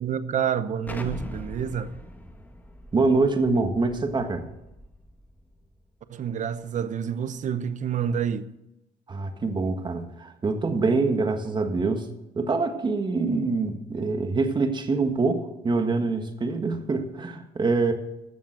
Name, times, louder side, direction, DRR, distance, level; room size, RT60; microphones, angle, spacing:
voice 1, 0.0-1.9 6.1-8.5, right 8 dB, 45° right, 0.9 m, -28 dB
Explosion, 0.9-5.6, left 1 dB, 10° left, 1.3 m, -41 dB
voice 2, 2.9-4.4 9.1-12.1 12.3-17.9, right 3 dB, 25° right, 1.5 m, -25 dB
13.5 x 7.2 x 6.6 m
cardioid pair, 110°, 17 cm